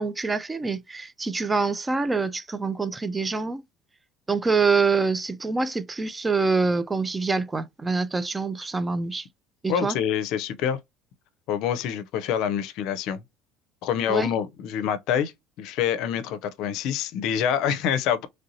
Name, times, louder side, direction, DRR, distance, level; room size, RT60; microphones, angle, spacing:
voice 1, 0.0-3.6 4.3-9.3 9.6-10.0 14.1-14.3, right 4 dB, 20° right, 0.4 m, -25 dB
voice 2, 9.7-10.8 11.5-13.2 13.8-15.3 15.6-18.3, left 9 dB, 70° left, 0.5 m, -26 dB
3.2 x 2.7 x 2.6 m
supercardioid pair, 90°, 0 cm